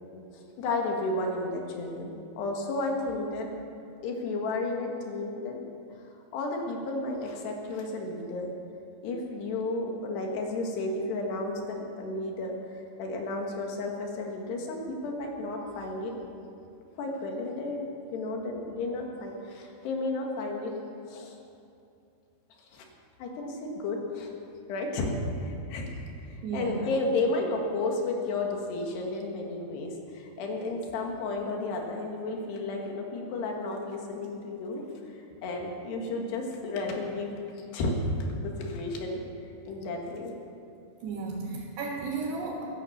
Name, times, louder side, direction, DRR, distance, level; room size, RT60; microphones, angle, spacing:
voice 1, 0.3-3.5 4.0-5.6 6.3-8.5 9.0-16.2 17.0-17.9 18.1-20.7 21.1-21.4 22.7-22.9 23.2-24.3 24.7-26.0 26.3-34.9 35.4-39.2 39.7-40.3, left 2 dB, 85° left, 1 dB, 3.9 m, -32 dB
voice 2, 26.4-26.9 41.0-42.6, right 4 dB, 85° right, -5 dB, 3.7 m, -33 dB
15.5 x 11.5 x 7.2 m, 2.6 s
omnidirectional pair, 4.7 m